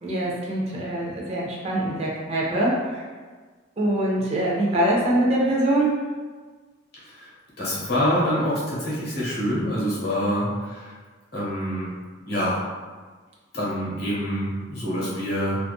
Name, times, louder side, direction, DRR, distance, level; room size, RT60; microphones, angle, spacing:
voice 1, 0.0-3.1 3.8-6.0, right 1 dB, 35° right, -4 dB, 0.5 m, -23 dB
voice 2, 7.6-10.9 11.3-11.9 12.3-12.6 13.5-15.6, equal, 60° left, -7 dB, 1.0 m, -26 dB
2.5 x 2.4 x 2.2 m, 1.4 s
head